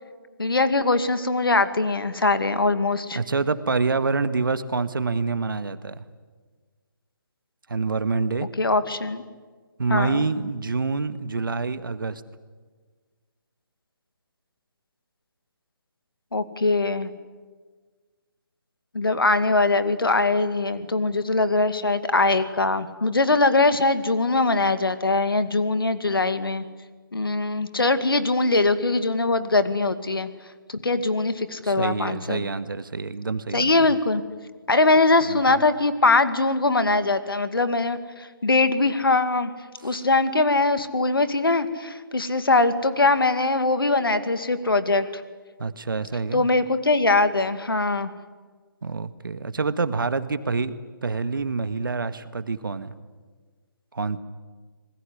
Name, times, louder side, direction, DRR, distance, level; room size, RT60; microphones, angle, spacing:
voice 1, 0.4-3.2 8.6-9.2 9.9-10.2 16.3-17.1 18.9-26.6 27.1-30.3 30.7-32.4 33.5-34.2 34.7-39.5 39.8-45.2 46.3-48.1, left 3 dB, 75° left, 11 dB, 2.3 m, -22 dB
voice 2, 3.2-6.0 7.7-8.5 9.8-12.2 31.6-33.7 35.3-35.6 39.9-40.0 45.6-46.5 48.8-52.9 53.9-54.2, right 4 dB, 65° right, 12 dB, 1.7 m, -27 dB
27.5 x 20.5 x 9.9 m, 1.5 s
figure-of-eight pair, 150°, 12 cm